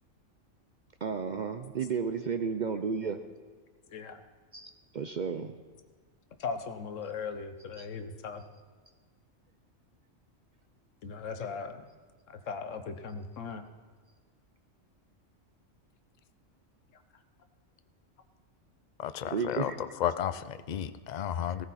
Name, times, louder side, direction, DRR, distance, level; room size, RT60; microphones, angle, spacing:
voice 1, 1.0-3.2 4.5-5.5 7.8-7.9 19.3-19.8, right 6 dB, 55° right, 8 dB, 0.5 m, -33 dB
voice 2, 6.4-8.4 11.0-11.9 12.3-13.6, left 5 dB, 85° left, 9 dB, 1.3 m, -38 dB
voice 3, 19.0-19.7 20.0-21.6, left 10 dB, 50° left, 11 dB, 0.5 m, -32 dB
16.5 x 14.0 x 4.2 m, 1.5 s
omnidirectional pair, 1.3 m